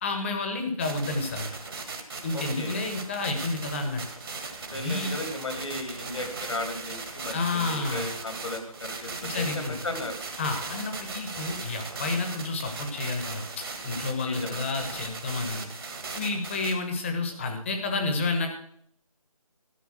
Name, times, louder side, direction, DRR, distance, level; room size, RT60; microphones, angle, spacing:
voice 1, 0.0-1.5 2.2-4.0 4.7-5.1 7.3-8.1 9.2-9.8 10.4-15.7 16.1-18.5, left 3 dB, 20° left, 5 dB, 1.4 m, -30 dB
sound 1, 0.8-16.7, right 4 dB, 40° right, 1.8 m, -38 dB
voice 2, 2.3-2.8 4.7-10.2 14.2-14.6, left 2 dB, 60° left, 6 dB, 2.3 m, -35 dB
13.0 x 5.5 x 7.9 m, 0.66 s
figure-of-eight pair, 160°, 19 cm